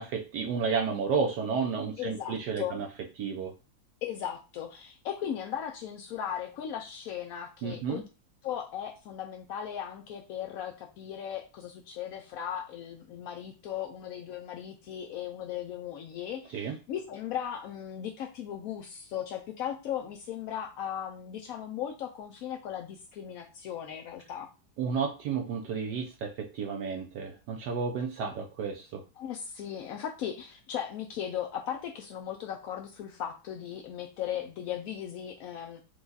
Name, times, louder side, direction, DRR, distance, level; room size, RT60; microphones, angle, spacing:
voice 1, 0.0-2.9 3.2-3.5 7.6-8.0 16.5-16.8 24.8-29.0, right 5 dB, 70° right, 2 dB, 1.1 m, -32 dB
voice 2, 2.0-2.8 4.0-8.0 8.4-24.5 29.2-35.8, left 9 dB, 85° left, 2 dB, 0.7 m, -37 dB
4.7 x 2.3 x 3.9 m, 0.32 s
omnidirectional pair, 2.0 m